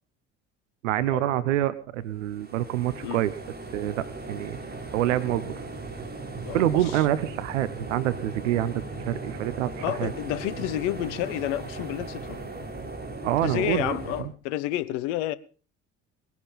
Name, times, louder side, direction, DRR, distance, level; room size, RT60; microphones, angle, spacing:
voice 1, 0.8-3.3 3.7-4.6 4.9-5.6 6.5-10.1 13.2-14.0, right 13 dB, 75° right, 1.0 m, -26 dB
sound 1, 2.2-14.2, right 3 dB, 25° right, 5.0 m, -37 dB
voice 2, 6.4-6.8 9.8-12.4 13.4-15.4, left 14 dB, 70° left, 1.1 m, -30 dB
20.5 x 10.5 x 5.5 m
figure-of-eight pair, 55°, 37 cm